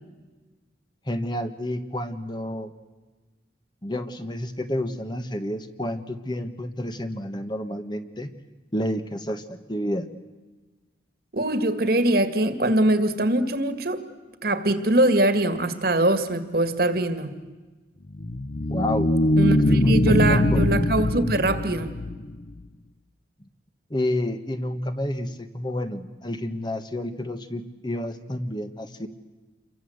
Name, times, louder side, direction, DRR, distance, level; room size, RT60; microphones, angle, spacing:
voice 1, 1.1-2.7 3.8-8.3 8.7-10.1 18.7-19.1 19.7-20.7 23.9-29.1, left 1 dB, 25° left, 8 dB, 1.3 m, -30 dB
voice 2, 11.3-14.0 14.4-17.3 19.4-21.9, right 1 dB, 55° right, 10 dB, 2.0 m, -22 dB
sound 1, 18.1-22.6, left 1 dB, 45° left, 0.8 m, -22 dB
28.5 x 23.5 x 8.0 m, 1.3 s
head